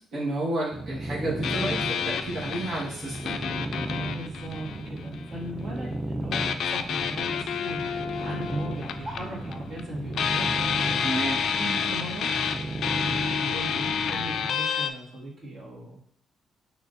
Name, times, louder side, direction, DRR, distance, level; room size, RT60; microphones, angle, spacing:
voice 1, 0.1-3.4 11.0-11.4, right 2 dB, 70° right, -6 dB, 1.3 m, -31 dB
sound 1, 0.7-14.5, right 2 dB, 20° right, 0.5 m, -35 dB
sound 2, 1.4-5.3 6.3-9.8 10.1-14.9, left 7 dB, 65° left, 0.3 m, -29 dB
voice 2, 4.1-11.0 11.6-12.3 13.3-16.0, right 1 dB, 55° right, -7 dB, 1.9 m, -38 dB
5.8 x 3.5 x 2.5 m, 0.67 s
cardioid pair, 90°, 0 cm